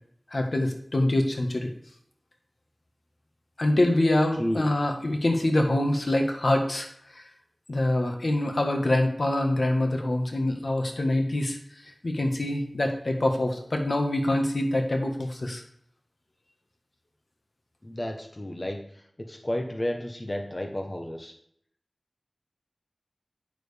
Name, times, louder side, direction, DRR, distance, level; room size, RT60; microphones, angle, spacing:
voice 1, 0.3-1.7 3.6-7.3 7.7-11.6 11.8-15.6, left 1 dB, 70° left, 3 dB, 1.5 m, -25 dB
voice 2, 17.8-18.8 19.3-21.3, left 1 dB, 35° left, 3 dB, 1.2 m, -31 dB
9.1 x 6.7 x 3.5 m, 0.66 s
wide cardioid pair, 50°, 0 cm